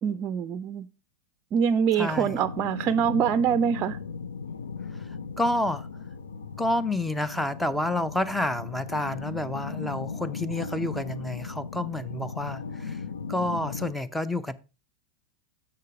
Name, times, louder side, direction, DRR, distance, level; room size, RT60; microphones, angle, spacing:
voice 1, 0.0-0.9 1.5-4.0, right 7 dB, 40° right, 0.5 m, -24 dB
voice 2, 2.0-2.4 5.4-5.9 6.6-13.0 13.3-14.5, left 1 dB, 5° left, 0.7 m, -29 dB
sound 1, 2.1-13.9, left 5 dB, 90° left, 0.8 m, -37 dB
7.0 x 6.6 x 5.0 m
hypercardioid pair, 100°, 0 cm